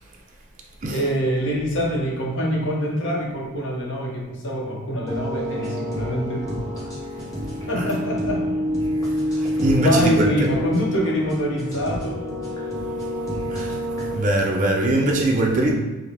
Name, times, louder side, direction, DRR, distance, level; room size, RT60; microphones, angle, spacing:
voice 1, 0.9-6.7 7.7-8.5 9.5-12.3, equal, 55° left, 0.7 m, -25 dB
sound 1, 5.1-14.1, equal, 15° left, 0.7 m, -27 dB
voice 2, 9.3-10.5 13.5-13.8 14.1-15.7, right 1 dB, 35° right, 0.4 m, -22 dB
4.9 x 2.0 x 2.8 m
head